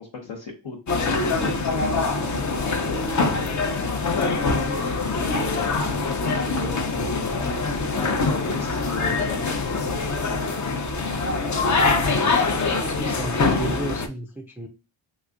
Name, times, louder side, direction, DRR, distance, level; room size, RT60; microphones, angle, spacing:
voice 1, 0.0-1.8 2.7-3.6 4.1-6.0 6.6-7.3 8.0-10.2, left 4 dB, 70° left, -2 dB, 0.9 m, -36 dB
sound 1, 0.9-14.1, left 3 dB, 40° left, 0.6 m, -24 dB
voice 2, 12.4-14.7, right 1 dB, 5° right, 3 dB, 0.3 m, -33 dB
3.6 x 3.1 x 2.4 m, 0.31 s
cardioid pair, 80°, 49 cm